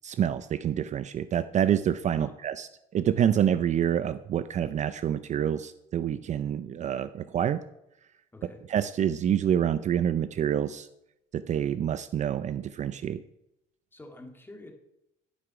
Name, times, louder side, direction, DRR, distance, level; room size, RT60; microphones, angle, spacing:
voice 1, 0.0-7.6 8.7-10.9 11.3-13.2, right 9 dB, 45° right, 13 dB, 0.4 m, -27 dB
voice 2, 8.3-8.6 13.9-14.7, left 2 dB, 10° left, 3 dB, 1.9 m, -47 dB
11.0 x 6.1 x 5.8 m, 0.84 s
cardioid pair, 110°, 17 cm